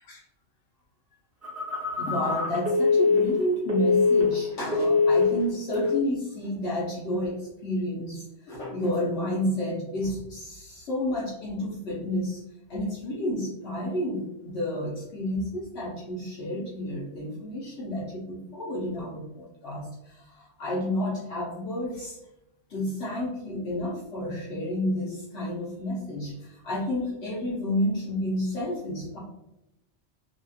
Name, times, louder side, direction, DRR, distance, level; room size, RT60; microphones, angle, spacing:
Telephone, 1.4-4.5 4.7-5.4 5.7-6.0, left 4 dB, 15° right, 1.0 m, -23 dB
voice 1, 2.0-12.4 12.7-22.2 22.7-29.2, left 1 dB, 75° left, -5 dB, 1.0 m, -31 dB
2.8 x 2.7 x 2.3 m, 0.89 s
omnidirectional pair, 1.2 m